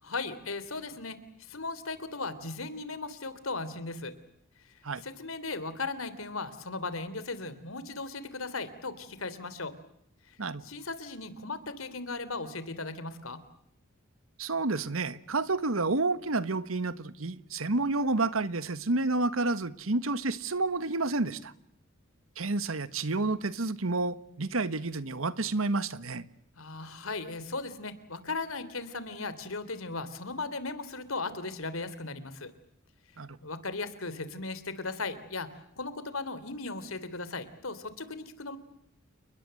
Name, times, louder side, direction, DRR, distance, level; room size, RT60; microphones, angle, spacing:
voice 1, 0.0-4.1 5.0-9.7 10.3-10.4 10.6-13.4 26.6-32.5 33.4-35.5 35.8-38.6, left 3 dB, 90° left, 3.3 m, -37 dB
voice 2, 14.4-21.5 22.4-26.2 33.2-33.4, right 3 dB, 90° right, 1.4 m, -30 dB
30.0 x 21.0 x 7.8 m
head